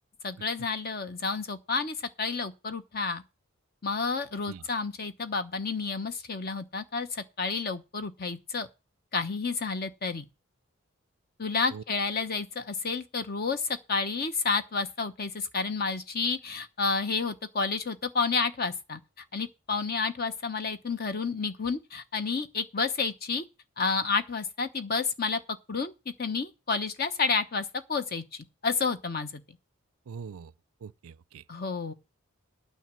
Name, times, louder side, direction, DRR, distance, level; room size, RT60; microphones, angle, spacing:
voice 1, 0.2-3.2 3.8-8.7 9.1-10.2 11.4-23.4 23.8-25.4 25.7-25.9 26.2-28.2 28.6-29.4 31.5-31.9, left 4 dB, 45° left, 0.9 m, -30 dB
voice 2, 30.1-30.5 30.8-31.4, right 6 dB, 85° right, 0.4 m, -43 dB
9.2 x 5.6 x 7.6 m
head